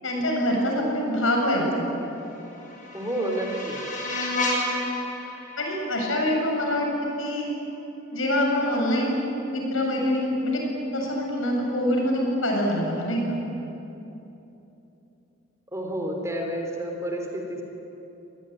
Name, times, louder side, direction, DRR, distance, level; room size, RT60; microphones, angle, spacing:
voice 1, 0.0-1.9 5.6-6.9 7.2-7.5 8.1-10.6 10.9-13.4, left 1 dB, 80° left, 0 dB, 7.8 m, -25 dB
sound 1, 2.1-7.1, left 1 dB, 40° left, 7.5 m, -32 dB
voice 2, 2.9-3.8 15.7-17.6, right 1 dB, 15° right, 2 dB, 3.9 m, -30 dB
27.0 x 20.0 x 9.7 m, 3.0 s
head